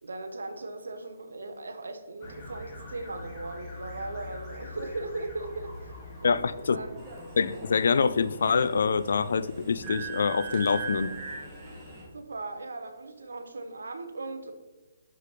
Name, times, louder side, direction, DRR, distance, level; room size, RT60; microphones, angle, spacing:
voice 1, 0.0-5.9 6.2-6.4 6.7-6.9 12.1-14.5, right 2 dB, 85° right, 7 dB, 0.8 m, -38 dB
sound 1, 2.2-12.1, left 2 dB, 20° left, 1.8 m, -45 dB
voice 2, 6.2-6.8 7.4-11.1, left 5 dB, 70° left, 15 dB, 0.3 m, -25 dB
sound 2, 7.0-12.0, right 4 dB, 20° right, 1.2 m, -40 dB
6.6 x 5.0 x 3.1 m, 1.2 s
hypercardioid pair, 155°, 0 cm